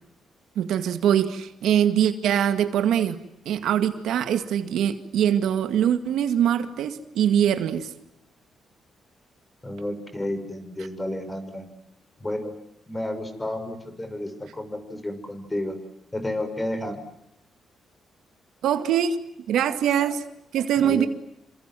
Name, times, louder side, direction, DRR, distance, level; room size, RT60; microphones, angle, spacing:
voice 1, 0.6-3.2 3.5-7.9 18.6-19.2 19.5-20.2 20.5-21.1, right 9 dB, 85° right, 2.1 m, -23 dB
voice 2, 9.6-11.6 12.2-12.5 12.9-15.8 16.1-17.0 20.8-21.1, left 1 dB, 15° left, 6.4 m, -31 dB
28.5 x 26.5 x 7.8 m
cardioid pair, 105°, 0 cm